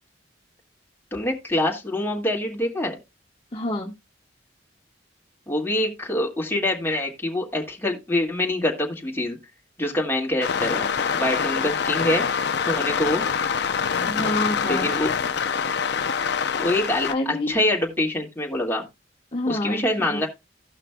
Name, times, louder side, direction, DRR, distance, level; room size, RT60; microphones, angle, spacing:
voice 1, 1.1-3.0 5.5-9.4 9.8-10.9 11.1-12.2 12.7-13.2 14.7-15.1 16.6-18.8 19.5-20.3, left 1 dB, 10° left, 2.0 m, -25 dB
voice 2, 3.5-3.9 14.0-14.9 17.1-17.6 19.3-20.3, left 1 dB, 30° left, 1.3 m, -28 dB
sound 1, 10.4-17.1, left 6 dB, 60° left, 0.5 m, -25 dB
17.0 x 5.8 x 2.2 m
head